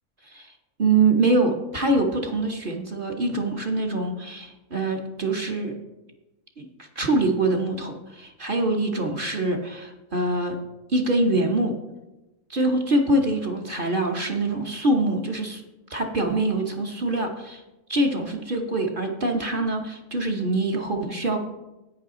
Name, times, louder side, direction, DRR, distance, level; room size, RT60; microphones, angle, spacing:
voice 1, 0.8-5.7 6.6-6.7 7.0-10.6 10.9-11.8 12.5-15.6 15.9-17.6 17.9-21.4, right 2 dB, 40° right, 2 dB, 1.0 m, -24 dB
10.5 x 8.6 x 3.7 m, 0.99 s
omnidirectional pair, 1.7 m